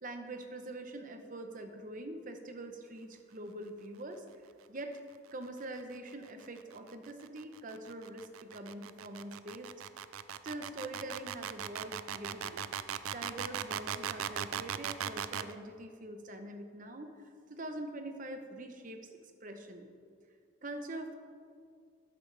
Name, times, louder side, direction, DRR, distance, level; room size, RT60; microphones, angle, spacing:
voice 1, 0.0-4.2 4.7-5.0 5.3-9.7 10.4-12.7 13.1-17.1 17.5-19.0 19.4-19.9 20.6-21.1, right 1 dB, 40° right, 5 dB, 0.9 m, -44 dB
sound 1, 6.3-15.5, right 9 dB, 90° right, 0.4 m, -38 dB
12.5 x 10.5 x 3.4 m, 2.1 s
head